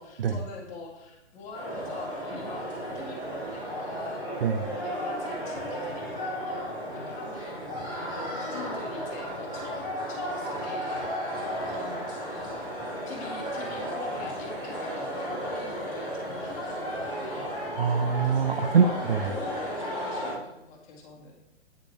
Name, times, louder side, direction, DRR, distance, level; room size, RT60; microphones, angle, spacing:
voice 1, 0.0-4.2 4.8-12.6 13.1-17.5 18.5-21.4, left 4 dB, 20° left, 0 dB, 1.8 m, -43 dB
sound 1, 1.5-20.3, equal, 15° right, 2.5 m, -34 dB
voice 2, 17.8-19.2, right 6 dB, 55° right, 10 dB, 0.6 m, -24 dB
9.2 x 8.0 x 3.3 m, 0.87 s
figure-of-eight pair, 125°, 35 cm